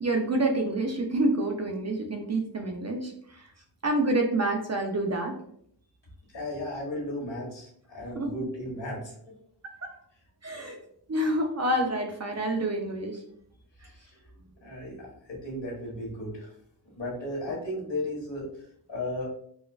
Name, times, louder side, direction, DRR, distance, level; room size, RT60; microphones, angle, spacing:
voice 1, 0.0-3.5 3.8-5.3 8.1-8.3 9.8-9.9 10.4-10.8 11.1-13.2, right 1 dB, 35° right, 3 dB, 0.4 m, -27 dB
voice 2, 6.3-9.3 13.8-14.2 14.6-16.6 16.9-19.3, left 1 dB, 65° left, -3 dB, 1.5 m, -35 dB
4.1 x 2.4 x 2.3 m, 0.67 s
wide cardioid pair, 105°, 47 cm